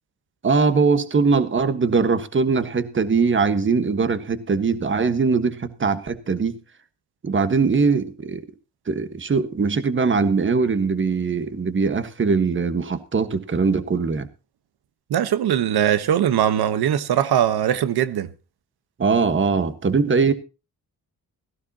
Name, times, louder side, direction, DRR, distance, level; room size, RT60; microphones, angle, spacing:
voice 1, 0.4-6.6 7.2-8.4 8.9-14.3 19.0-20.3, right 4 dB, 30° right, 1.4 m, -21 dB
voice 2, 15.1-18.3, right 10 dB, 90° right, 1.1 m, -20 dB
16.5 x 15.0 x 2.8 m
wide cardioid pair, 130°, 37 cm